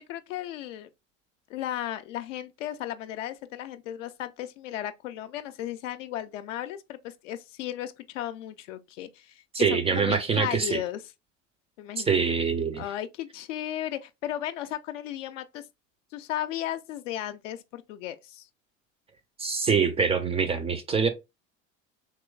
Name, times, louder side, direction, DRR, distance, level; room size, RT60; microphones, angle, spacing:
voice 1, 0.1-0.9 1.5-11.0 11.8-12.1 12.8-15.6 16.1-18.5, left 12 dB, 70° left, 0.5 m, -35 dB
voice 2, 9.5-10.8 12.0-12.8 19.4-21.1, right 5 dB, 15° right, 0.4 m, -25 dB
3.0 x 3.0 x 2.2 m
hypercardioid pair, 75°, 39 cm